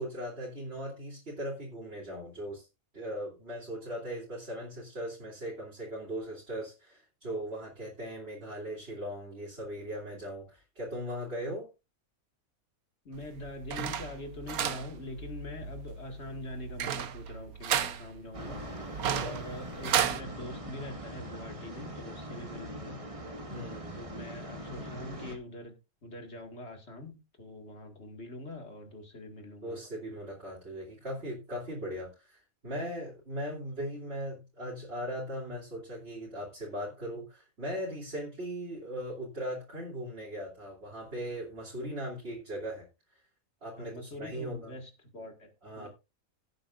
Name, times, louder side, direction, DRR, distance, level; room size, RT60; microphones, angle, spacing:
voice 1, 0.0-2.7 2.9-11.7 19.1-19.3 23.5-24.0 29.6-42.9 43.6-44.7 45.6-45.9, equal, 45° right, -5 dB, 3.2 m, -39 dB
voice 2, 13.0-23.0 23.9-25.7 26.0-29.8 43.8-45.9, left 1 dB, 50° left, 4 dB, 2.3 m, -44 dB
sound 1, 13.1-20.2, right 9 dB, 85° right, 1.3 m, -34 dB
sound 2, 18.3-25.4, equal, 25° right, 1.7 m, -42 dB
17.0 x 8.8 x 2.5 m, 0.27 s
omnidirectional pair, 1.5 m